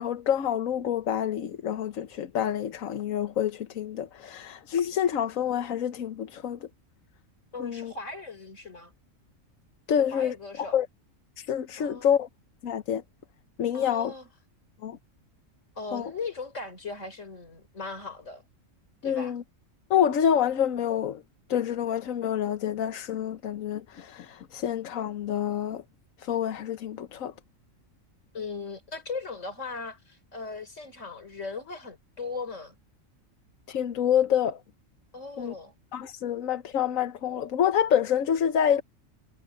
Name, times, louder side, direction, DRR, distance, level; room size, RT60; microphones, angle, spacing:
voice 1, 0.0-6.6 7.6-7.9 9.9-10.9 11.4-12.3 12.6-13.0 13.6-14.1 14.8-15.0 15.9-16.1 19.0-19.4 19.9-21.2 21.5-25.8 26.2-27.3 33.7-34.6 35.4-35.5 35.9-38.8, left 9 dB, 80° left, 1.3 m, -27 dB
voice 2, 7.5-8.9 10.0-10.8 11.8-12.1 13.7-14.3 15.8-18.4 19.0-19.3 28.3-32.8 35.1-35.7, left 4 dB, 65° left, 4.5 m, -38 dB
omnidirectional pair, 1.4 m